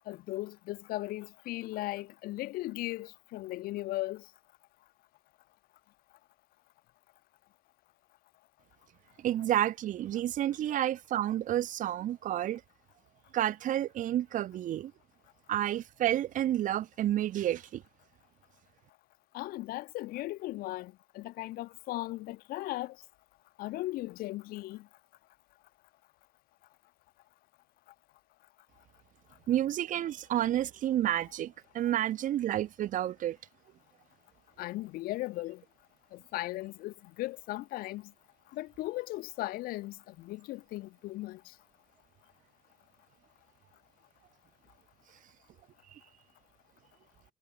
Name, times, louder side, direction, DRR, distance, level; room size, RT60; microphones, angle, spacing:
voice 1, 0.1-4.2 19.3-23.0 23.6-24.9 34.6-35.6 36.1-38.1 38.5-41.4, left 18 dB, 55° left, 1.3 m, -37 dB
voice 2, 9.2-12.6 13.3-14.9 15.5-17.8 29.5-33.4 45.9-46.0, right 12 dB, 45° right, 1.4 m, -30 dB
figure-of-eight pair, 55°, 18 cm